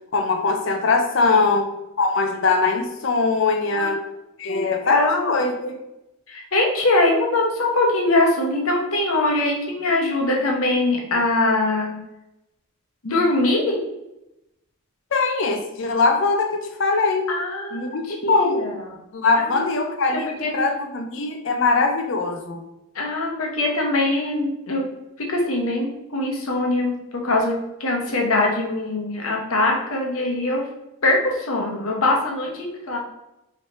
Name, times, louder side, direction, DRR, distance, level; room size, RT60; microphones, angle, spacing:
voice 1, 0.1-1.7 2.0-4.0 4.4-5.7 15.1-17.3 17.7-18.6 19.1-20.3 20.5-22.6, left 3 dB, 55° left, 3 dB, 0.5 m, -21 dB
voice 2, 1.2-1.6 3.7-3.9 4.5-5.3 6.3-11.9 13.0-13.8 17.3-18.9 19.4-19.7 20.1-20.5 22.9-24.9 25.2-27.5 27.8-30.6 31.0-33.0, left 2 dB, 75° left, 0 dB, 0.9 m, -22 dB
3.1 x 3.1 x 4.0 m, 0.90 s
head